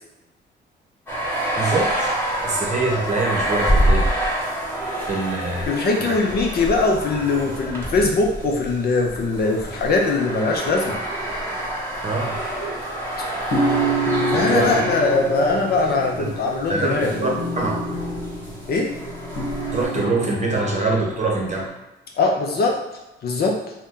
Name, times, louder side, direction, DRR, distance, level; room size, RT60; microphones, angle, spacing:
sound 1, 1.1-19.9, right 1 dB, 10° left, 1.0 m, -27 dB
voice 1, 1.6-2.1 2.4-4.1 5.1-5.7 6.0-6.2 12.0-12.4 14.3-14.8 16.2-16.3 16.7-17.3 17.6-17.8 19.7-21.7, right 3 dB, 35° right, -1 dB, 0.8 m, -24 dB
voice 2, 5.7-11.0 14.3-17.4 18.7-18.9 22.2-22.8 23.2-23.6, left 3 dB, 50° left, 0 dB, 0.6 m, -21 dB
sound 2, 13.5-21.7, right 1 dB, 80° left, 1.0 m, -27 dB
2.7 x 2.2 x 3.6 m, 0.99 s
cardioid pair, 90°, 20 cm